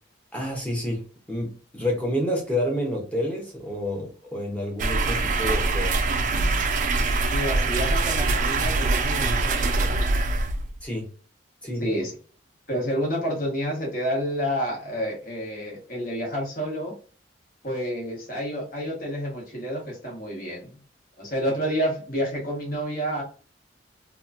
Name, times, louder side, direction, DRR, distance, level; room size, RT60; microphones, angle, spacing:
voice 1, 0.3-1.0 1.3-6.0 10.8-11.1 11.6-11.9, left 1 dB, 5° left, -2 dB, 0.8 m, -29 dB
sound 1, 4.8-10.8, right 3 dB, 45° right, 0.3 m, -23 dB
voice 2, 7.1-10.1 11.8-12.1 12.7-16.9 17.6-20.8 21.2-23.2, equal, 50° left, -2 dB, 1.3 m, -29 dB
2.9 x 2.3 x 2.5 m, 0.39 s
head